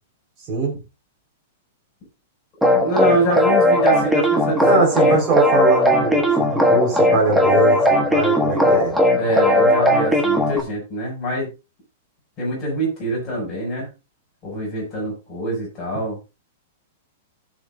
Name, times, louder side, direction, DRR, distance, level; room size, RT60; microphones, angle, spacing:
voice 1, 0.5-0.8 4.6-8.9, right 3 dB, 20° right, -3 dB, 4.3 m, -21 dB
sound 1, 2.6-10.6, left 1 dB, ahead, 1.1 m, -17 dB
voice 2, 2.7-5.2 9.1-11.5 12.4-13.9 14.4-16.2, right 1 dB, 15° left, -3 dB, 6.2 m, -24 dB
16.0 x 6.6 x 2.6 m, 0.27 s
supercardioid pair, 175°, 0 cm